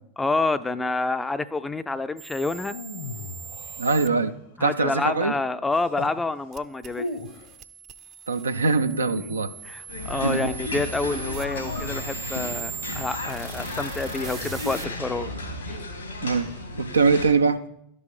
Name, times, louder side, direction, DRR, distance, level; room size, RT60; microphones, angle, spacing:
voice 1, 0.2-2.8 4.6-7.1 9.2-9.4 9.6-15.3 15.7-15.8, left 3 dB, 10° left, 13 dB, 0.4 m, -28 dB
sound 1, 2.2-4.1 6.5-14.9, right 9 dB, 40° right, 0.6 m, -40 dB
sound 2, 2.5-4.5 5.7-6.2 6.9-7.5 8.6-9.9 11.4-12.6 14.2-15.0, left 3 dB, 60° left, 1.0 m, -39 dB
voice 2, 3.8-4.3 4.6-5.4 8.3-9.5 10.2-10.5 16.2-17.6, right 4 dB, 80° right, 9 dB, 0.5 m, -22 dB
sound 3, 9.9-17.3, left 2 dB, 85° left, 2.3 m, -34 dB
12.0 x 5.4 x 4.9 m, 0.76 s
figure-of-eight pair, 80°, 0 cm